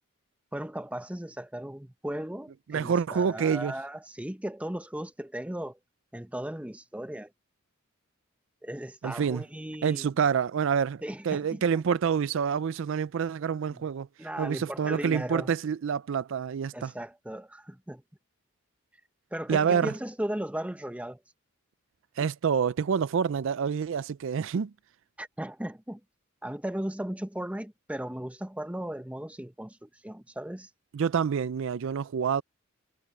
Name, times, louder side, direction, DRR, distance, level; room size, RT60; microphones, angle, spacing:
voice 1, 0.5-5.8 6.1-7.3 8.6-10.1 11.0-11.6 13.7-13.8 14.2-15.5 16.7-18.0 19.3-21.2 25.2-26.0 26.4-30.7, right 1 dB, 5° right, 0.8 m, -36 dB
voice 2, 2.7-3.7 9.0-9.4 9.8-14.1 14.4-16.9 19.5-19.9 22.2-24.7 30.9-32.4, right 7 dB, 65° right, 0.4 m, -27 dB
head